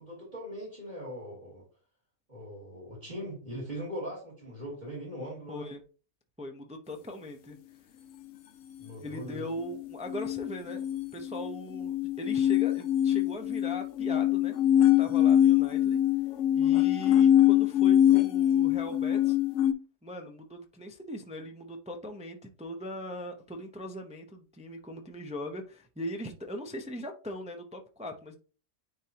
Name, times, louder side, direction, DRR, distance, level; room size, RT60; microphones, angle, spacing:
voice 1, 0.0-1.6 2.3-5.7 8.8-9.4, equal, 30° right, 2.6 m, -40 dB
voice 2, 5.5-5.8 6.4-7.6 9.0-10.8 11.1-16.0 16.5-19.4 20.0-28.4, left 1 dB, 10° right, 0.4 m, -40 dB
sound 1, 10.1-19.7, left 11 dB, 70° left, 0.9 m, -23 dB
9.5 x 3.4 x 2.9 m
omnidirectional pair, 1.5 m